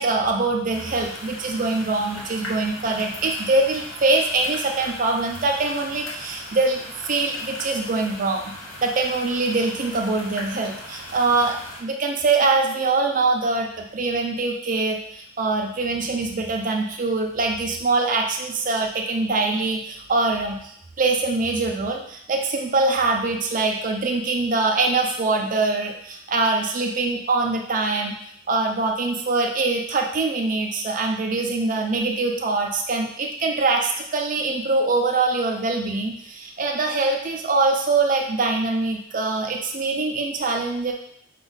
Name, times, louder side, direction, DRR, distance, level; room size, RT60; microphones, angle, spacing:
voice 1, 0.0-8.5 8.8-28.1 28.5-40.9, right 3 dB, 40° right, 2 dB, 0.4 m, -23 dB
sound 1, 0.7-11.8, left 1 dB, 90° left, 1.4 m, -38 dB
5.9 x 2.3 x 3.9 m, 0.68 s
head